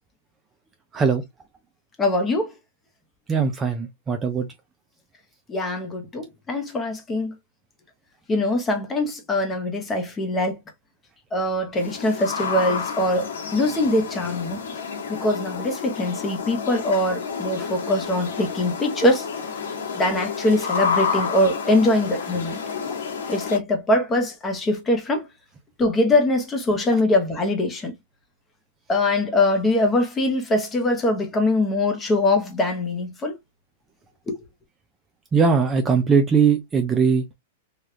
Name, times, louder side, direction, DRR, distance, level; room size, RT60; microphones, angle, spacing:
voice 1, 2.0-2.5 5.5-7.3 8.3-10.6 11.3-14.6 15.1-19.3 19.9-22.6 23.3-25.3 25.8-27.9 28.9-33.3 34.3-34.4, left 1 dB, 15° left, 0.8 m, -22 dB
voice 2, 3.3-4.5 35.3-37.2, right 5 dB, 15° right, 0.4 m, -20 dB
sound 1, 11.8-23.6, left 5 dB, 85° left, 1.3 m, -30 dB
3.3 x 2.3 x 2.7 m
hypercardioid pair, 150°, 0 cm